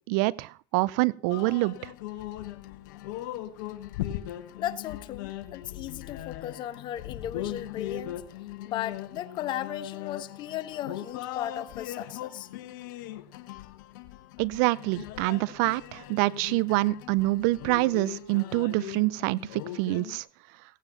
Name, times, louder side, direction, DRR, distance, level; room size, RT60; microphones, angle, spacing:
voice 1, 0.1-1.9 14.4-20.2, right 21 dB, 65° right, 0.6 m, -26 dB
sound 1, 1.3-20.2, left 13 dB, 70° left, 1.4 m, -39 dB
voice 2, 4.6-8.2 8.6-12.5, left 11 dB, 45° left, 1.3 m, -36 dB
17.0 x 9.3 x 5.7 m
hypercardioid pair, 95°, 11 cm